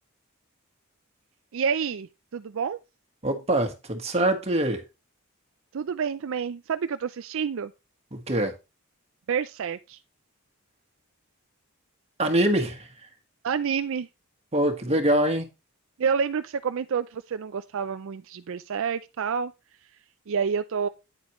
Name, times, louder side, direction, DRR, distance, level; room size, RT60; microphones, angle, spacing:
voice 1, 1.5-2.8 5.7-7.7 9.3-10.0 13.4-14.1 16.0-19.5 20.3-20.9, right 6 dB, 65° right, 0.4 m, -28 dB
voice 2, 3.2-4.8 8.1-8.5 12.2-12.9 14.5-15.5, right 1 dB, 30° right, 1.6 m, -24 dB
9.4 x 8.1 x 3.1 m
head